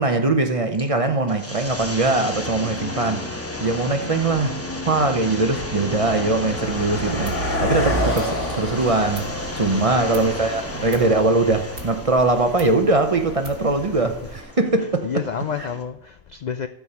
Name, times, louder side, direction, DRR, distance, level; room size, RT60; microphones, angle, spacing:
voice 1, 0.0-4.6 4.9-15.1 15.6-15.7, right 2 dB, 35° right, 0.8 m, -21 dB
sound 1, 0.6-15.8, left 1 dB, 15° left, 0.9 m, -33 dB
Car passing by, 2.7-2.8 3.6-3.8 4.1-14.5, equal, 85° left, 2.4 m, -30 dB
sound 2, 6.5-14.4, right 3 dB, 90° right, 1.8 m, -41 dB
voice 2, 9.6-10.4 13.9-14.1 14.8-16.7, left 7 dB, 60° left, 0.4 m, -31 dB
12.5 x 4.7 x 5.5 m
omnidirectional pair, 1.2 m